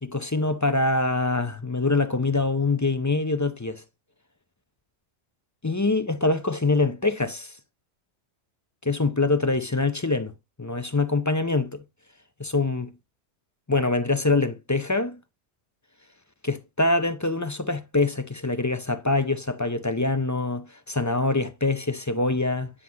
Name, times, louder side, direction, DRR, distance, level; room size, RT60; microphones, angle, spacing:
voice 1, 0.0-3.8 5.6-7.5 8.8-10.3 10.6-11.8 12.4-12.9 13.7-15.2 16.4-22.7, left 3 dB, 20° left, 0.5 m, -24 dB
9.8 x 5.6 x 2.8 m
omnidirectional pair, 1.1 m